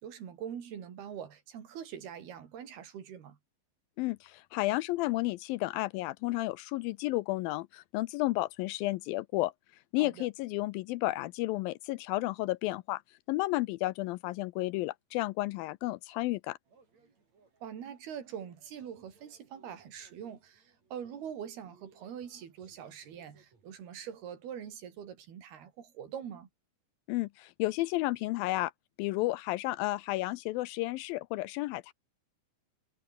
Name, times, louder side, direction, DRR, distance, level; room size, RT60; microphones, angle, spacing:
voice 1, 0.0-3.4 10.0-10.3 17.6-26.5, right 8 dB, 85° right, 4.9 m, -43 dB
voice 2, 4.0-9.5 9.9-13.0 13.3-16.6 27.1-28.7 29.0-31.9, left 19 dB, 80° left, 2.2 m, -32 dB
sound 1, 16.6-24.6, right 4 dB, 45° right, 6.4 m, -66 dB
omnidirectional pair, 4.4 m